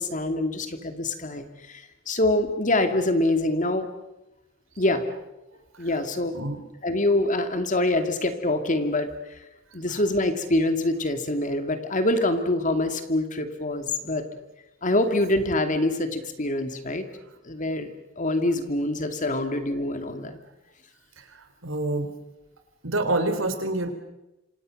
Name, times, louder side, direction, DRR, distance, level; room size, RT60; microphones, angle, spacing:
voice 1, 0.0-3.9 4.8-5.0 5.8-6.4 6.8-9.1 9.7-14.2 14.8-17.1 17.4-17.9 18.2-20.4, left 1 dB, 40° left, 8 dB, 2.5 m, -25 dB
voice 2, 21.2-22.1 22.8-23.9, right 2 dB, 90° right, 7 dB, 3.9 m, -27 dB
27.0 x 26.5 x 6.6 m, 0.98 s
head